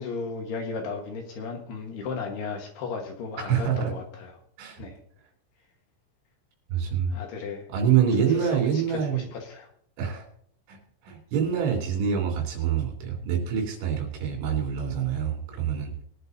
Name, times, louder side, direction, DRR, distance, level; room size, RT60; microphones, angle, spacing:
voice 1, 0.0-4.3 4.8-5.0 7.1-7.7 8.2-9.7, left 4 dB, 65° left, 2 dB, 3.0 m, -35 dB
voice 2, 3.4-3.9 4.6-4.8 6.7-7.2 7.7-9.3 10.0-10.3 10.7-15.9, right 8 dB, 70° right, 2 dB, 5.3 m, -26 dB
21.5 x 10.5 x 2.7 m, 0.62 s
omnidirectional pair, 5.6 m